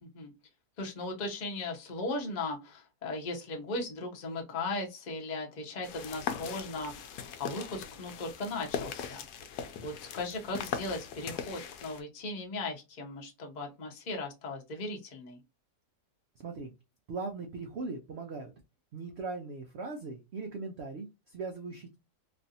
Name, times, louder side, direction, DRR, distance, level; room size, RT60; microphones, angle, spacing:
voice 1, 0.0-0.3 0.8-9.2 9.8-15.4, left 2 dB, 40° left, 1 dB, 0.7 m, -37 dB
sound 1, 5.8-12.0, left 7 dB, 75° left, 1.1 m, -40 dB
voice 2, 16.4-16.7 17.1-18.5 18.9-22.0, right 3 dB, 70° right, 3 dB, 0.6 m, -39 dB
3.2 x 2.5 x 2.7 m, 0.25 s
omnidirectional pair, 1.8 m